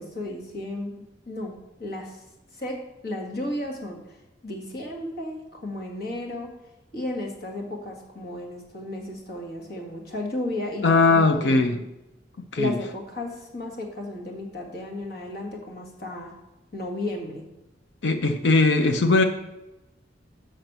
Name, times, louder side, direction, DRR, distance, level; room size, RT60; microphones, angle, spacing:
voice 1, 0.0-2.2 2.5-4.2 4.4-6.5 6.9-11.8 12.6-16.4 16.7-17.4, left 1 dB, 55° left, 1 dB, 1.8 m, -34 dB
voice 2, 10.8-11.8 12.5-12.8 18.0-19.2, left 3 dB, 75° left, 7 dB, 0.6 m, -19 dB
6.4 x 6.0 x 6.6 m, 0.97 s
head